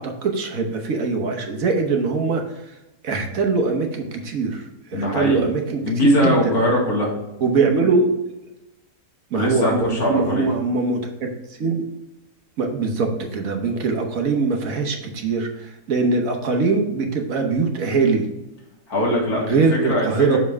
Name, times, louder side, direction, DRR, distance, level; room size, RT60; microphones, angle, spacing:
voice 1, 0.0-2.8 3.0-6.5 7.4-8.1 9.3-11.3 11.6-11.8 12.6-18.2 19.4-20.4, right 4 dB, 60° right, 3 dB, 1.3 m, -22 dB
voice 2, 4.9-5.5 5.8-7.1 9.3-10.5 18.9-20.4, equal, 70° left, -3 dB, 2.4 m, -21 dB
6.6 x 5.3 x 3.5 m, 0.95 s
omnidirectional pair, 1.7 m